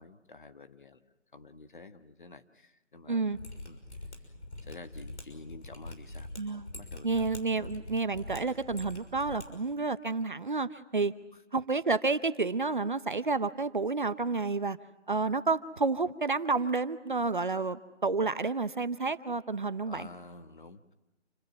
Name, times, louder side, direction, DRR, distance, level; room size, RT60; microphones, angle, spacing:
voice 1, 0.0-3.2 3.6-3.8 4.6-7.3 7.6-7.7 11.3-11.4 19.9-20.9, left 3 dB, 45° left, 10 dB, 1.4 m, -50 dB
voice 2, 3.1-3.4 6.4-6.7 7.0-11.1 11.5-14.8 15.1-20.1, right 3 dB, 45° right, 14 dB, 0.8 m, -30 dB
Mechanisms, 3.3-9.4 9.7-9.8, left 2 dB, 70° left, 6.2 m, -44 dB
28.5 x 17.0 x 9.6 m, 1.0 s
figure-of-eight pair, 175°, 35 cm